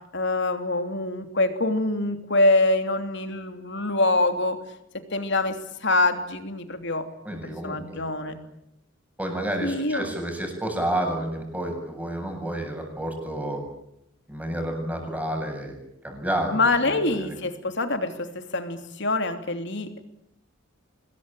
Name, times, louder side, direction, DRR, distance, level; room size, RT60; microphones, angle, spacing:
voice 1, 0.1-4.6 5.1-7.4 7.6-8.4 9.6-10.1 16.5-20.0, left 2 dB, 60° left, 7 dB, 3.1 m, -25 dB
voice 2, 7.2-8.3 9.2-13.6 14.3-15.7 16.0-17.3, right 1 dB, 10° right, 2 dB, 7.9 m, -30 dB
26.0 x 21.0 x 9.1 m, 0.79 s
head